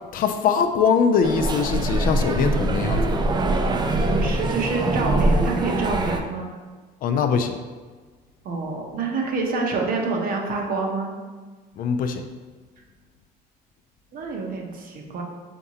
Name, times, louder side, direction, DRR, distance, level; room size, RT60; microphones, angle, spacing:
voice 1, 0.1-3.2 7.0-7.6 11.8-12.3, left 6 dB, 55° left, 7 dB, 0.4 m, -22 dB
sound 1, 1.2-6.2, right 2 dB, 25° right, 0.4 m, -23 dB
voice 2, 4.0-6.5 8.4-11.1 14.1-15.2, right 3 dB, 55° right, 1 dB, 0.8 m, -27 dB
4.4 x 3.6 x 2.8 m, 1.4 s
cardioid pair, 110°, 17 cm